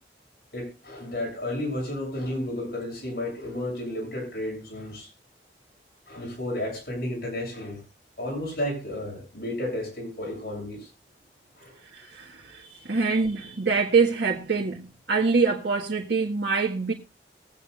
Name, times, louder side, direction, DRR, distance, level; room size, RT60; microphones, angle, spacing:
voice 1, 0.5-5.1 6.1-7.8 8.2-10.9 11.6-11.8, left 1 dB, 60° left, 7.3 m, -32 dB
voice 2, 11.9-16.9, right 4 dB, 85° right, 1.8 m, -25 dB
22.0 x 9.1 x 2.5 m
head